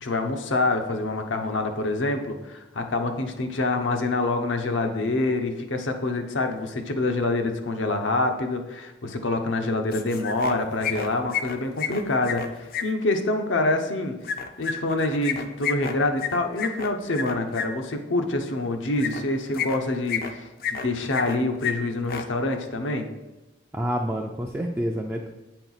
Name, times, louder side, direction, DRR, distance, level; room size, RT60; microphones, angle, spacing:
voice 1, 0.0-14.1 14.6-23.1, left 2 dB, 80° left, 5 dB, 0.8 m, -26 dB
sound 1, 9.9-10.6 10.8-12.8 14.2-17.7 19.0-19.2 19.5-20.3 20.6-21.4 21.6-21.7 22.0-22.2, left 8 dB, 50° left, 0.5 m, -30 dB
voice 2, 23.7-25.3, equal, 10° right, 1 dB, 0.3 m, -28 dB
8.3 x 4.4 x 4.0 m, 1.1 s
head